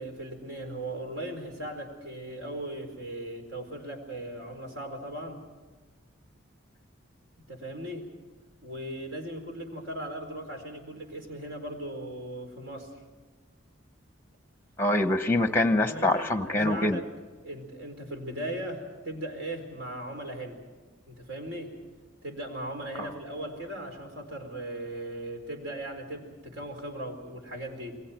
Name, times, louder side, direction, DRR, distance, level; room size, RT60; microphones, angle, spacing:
voice 1, 0.0-5.4 7.5-8.1 8.6-12.9 15.8-17.0 17.4-20.6 21.1-21.7 22.2-28.0, right 1 dB, 60° right, 4 dB, 4.5 m, -38 dB
voice 2, 14.8-17.0 23.0-23.1, left 1 dB, 10° left, 9 dB, 1.0 m, -25 dB
28.5 x 22.0 x 4.5 m, 1.3 s
head